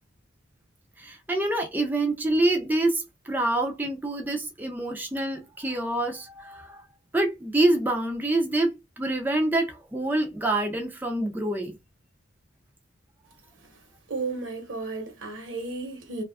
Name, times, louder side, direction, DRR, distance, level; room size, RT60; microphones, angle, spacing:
voice 1, 1.0-6.8 7.1-11.8, right 2 dB, 10° right, 0.4 m, -26 dB
voice 2, 14.1-16.2, right 3 dB, 70° right, 0.9 m, -33 dB
2.4 x 2.3 x 2.2 m
head